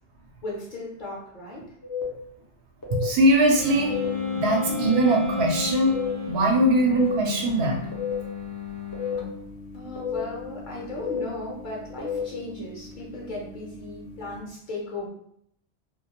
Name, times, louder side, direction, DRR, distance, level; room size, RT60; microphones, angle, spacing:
voice 1, 0.4-1.7 9.7-15.1, left 2 dB, 55° left, -4 dB, 0.7 m, -36 dB
sound 1, 1.8-2.0 2.8-3.0 3.8-4.0 4.8-5.1 5.9-6.1 6.9-7.1 7.9-8.1 8.9-9.1 10.0-10.2 11.0-11.2 12.0-12.2, left 7 dB, 35° left, 0.3 m, -31 dB
voice 2, 2.9-4.0 4.3-6.0 6.3-7.8, right 1 dB, 70° right, 0 dB, 0.8 m, -21 dB
Wind instrument woodwind instrument, 3.5-6.4, left 4 dB, 45° right, 0.5 m, -32 dB
sound 2, 3.6-14.4, left 7 dB, 80° left, 0.9 m, -38 dB
2.3 x 2.0 x 2.8 m, 0.71 s
omnidirectional pair, 1.1 m